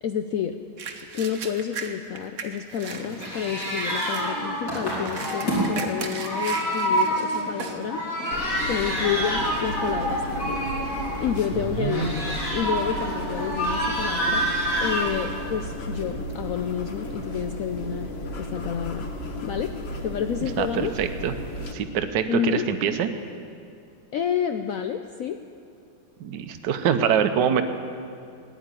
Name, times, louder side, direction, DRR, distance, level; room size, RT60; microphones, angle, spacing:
voice 1, 0.0-0.6 1.1-8.0 8.6-10.6 11.2-14.5 14.8-19.1 19.4-19.7 20.0-20.9 22.3-22.6 24.1-25.4, left 8 dB, 80° left, 7 dB, 0.7 m, -29 dB
sound 1, 0.8-7.9 8.4-8.5 9.0-9.4 10.1-10.3 10.6-11.7 12.0-12.6 13.0-13.1 13.9-14.5 14.9-18.0, right 5 dB, 50° right, 1.1 m, -39 dB
sound 2, 2.8-15.5, right 1 dB, 60° left, 4.3 m, -28 dB
sound 3, 8.3-21.7, left 1 dB, 40° left, 1.2 m, -34 dB
voice 2, 11.5-12.1 20.6-21.3 21.7-23.1 26.2-27.6, right 8 dB, 70° right, 8 dB, 1.3 m, -24 dB
15.0 x 10.0 x 8.9 m, 2.4 s
omnidirectional pair, 2.1 m